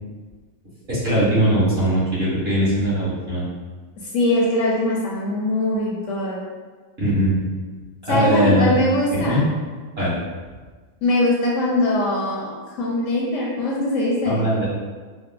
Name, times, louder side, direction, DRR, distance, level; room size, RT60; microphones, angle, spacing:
voice 1, 0.9-3.5 7.0-7.4 8.1-8.7 9.2-9.4 10.0-10.2 14.2-14.7, equal, 45° right, -10 dB, 1.6 m, -20 dB
voice 2, 4.1-6.4 8.1-9.4 11.0-12.5 12.8-14.4, left 1 dB, 65° left, -4 dB, 0.9 m, -21 dB
4.2 x 2.0 x 3.7 m, 1.4 s
omnidirectional pair, 1.6 m